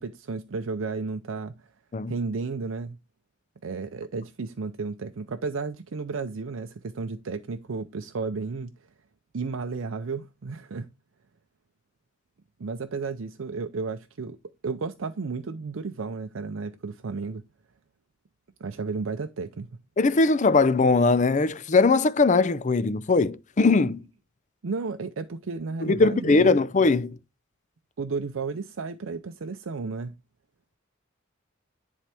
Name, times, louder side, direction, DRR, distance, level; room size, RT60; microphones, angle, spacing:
voice 1, 0.0-1.7 2.1-3.0 3.6-8.7 9.3-10.9 12.6-14.4 14.6-17.4 18.6-19.7 24.6-26.6 28.0-30.1, right 4 dB, 75° right, 0.5 m, -33 dB
voice 2, 20.0-24.0 25.8-27.2, left 3 dB, 35° left, 0.5 m, -20 dB
10.0 x 4.5 x 3.4 m
head